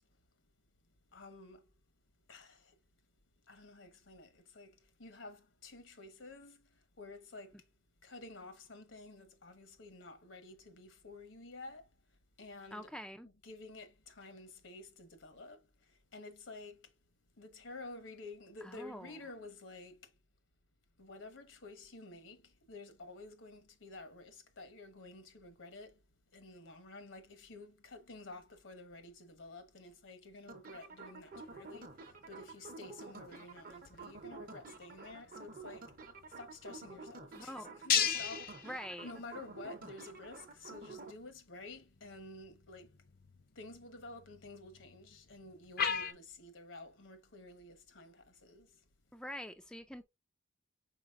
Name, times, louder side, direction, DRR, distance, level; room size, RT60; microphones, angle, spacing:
voice 1, 1.1-1.6 2.3-2.7 3.5-6.6 7.0-7.6 8.0-11.9 12.4-15.6 16.1-16.8 17.4-20.0 21.0-26.0 26.3-31.9 32.3-35.9 36.4-42.9 43.5-48.7, left 2 dB, 75° left, 1.1 m, -51 dB
voice 2, 12.7-13.3 18.6-19.2 37.3-37.8 38.6-39.1 49.1-50.0, equal, 5° left, 0.3 m, -45 dB
sound 1, 30.5-41.1, right 3 dB, 45° right, 0.7 m, -50 dB
sound 2, 31.3-46.1, left 7 dB, 45° left, 0.6 m, -41 dB
5.0 x 4.0 x 2.4 m
head